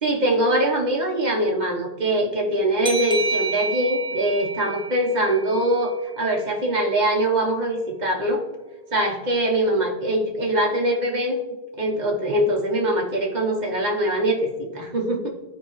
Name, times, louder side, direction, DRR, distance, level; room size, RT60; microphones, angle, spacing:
voice 1, 0.0-8.4 8.9-11.4 11.8-15.3, right 1 dB, 45° right, -1 dB, 1.3 m, -23 dB
sound 1, 2.8-6.2, right 3 dB, 5° right, 0.6 m, -30 dB
13.0 x 4.5 x 3.1 m, 1.2 s
omnidirectional pair, 1.1 m